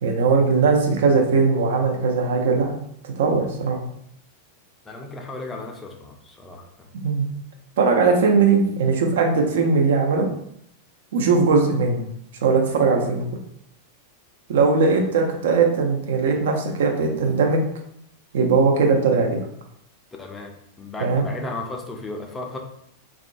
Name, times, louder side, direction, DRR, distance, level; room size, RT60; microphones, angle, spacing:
voice 1, 0.0-2.8 3.0-3.8 7.0-7.3 7.8-10.3 11.1-12.0 12.4-13.2 14.5-17.6 18.3-19.4 21.0-21.3, right 4 dB, 60° right, 2 dB, 0.4 m, -19 dB
voice 2, 4.9-6.6 20.2-22.6, left 2 dB, 15° left, 1 dB, 0.4 m, -35 dB
2.4 x 2.1 x 2.5 m, 0.72 s
figure-of-eight pair, 90°, 0 cm